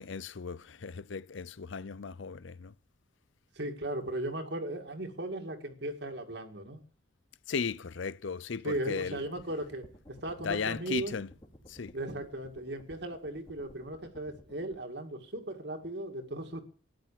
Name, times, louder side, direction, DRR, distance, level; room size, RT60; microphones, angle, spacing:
voice 1, 0.0-2.7 7.5-9.2 10.4-11.3 11.7-12.0, left 5 dB, 75° left, 0.6 m, -36 dB
voice 2, 3.6-6.8 8.6-9.9 10.2-11.1 11.9-16.6, right 1 dB, 60° right, 2.2 m, -37 dB
sound 1, 9.1-14.8, equal, 25° left, 2.9 m, -55 dB
13.5 x 10.5 x 7.3 m
head